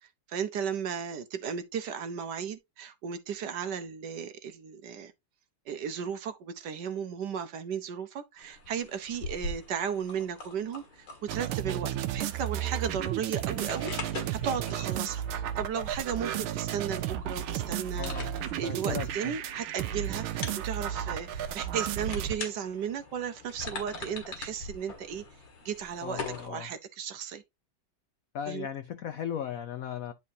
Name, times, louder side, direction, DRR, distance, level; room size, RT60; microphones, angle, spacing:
voice 1, 0.0-5.1 5.7-25.3 25.6-27.4 28.5-28.7, right 7 dB, 65° right, 1.2 m, -35 dB
sound 1, 8.4-26.5, left 3 dB, 65° left, 2.5 m, -44 dB
sound 2, 11.3-22.4, right 11 dB, 85° right, 1.5 m, -33 dB
voice 2, 18.0-18.4 18.6-19.3 26.0-26.7 28.3-30.1, left 9 dB, 80° left, 0.7 m, -37 dB
10.5 x 4.6 x 2.7 m
omnidirectional pair, 2.2 m